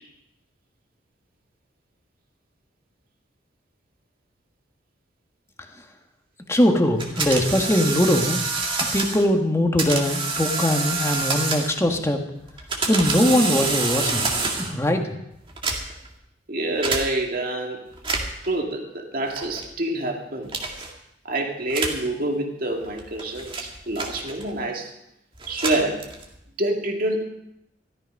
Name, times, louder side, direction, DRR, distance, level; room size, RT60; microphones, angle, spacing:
voice 1, 6.5-8.4 8.8-12.2 12.9-14.3 14.6-15.2, left 1 dB, 15° left, 4 dB, 1.5 m, -21 dB
sound 1, 7.0-9.3 9.8-11.9 12.5-14.8 15.5-16.1 16.8-17.1 17.9-18.5 19.4-19.7 20.5-20.9 21.7-22.1 22.8-24.6 25.4-26.4, right 3 dB, 30° right, 2.0 m, -27 dB
voice 2, 16.5-17.8 18.5-20.5 21.2-24.9 25.5-26.1 26.6-27.2, right 1 dB, 55° right, 2 dB, 2.3 m, -27 dB
14.0 x 13.0 x 5.3 m, 0.81 s
head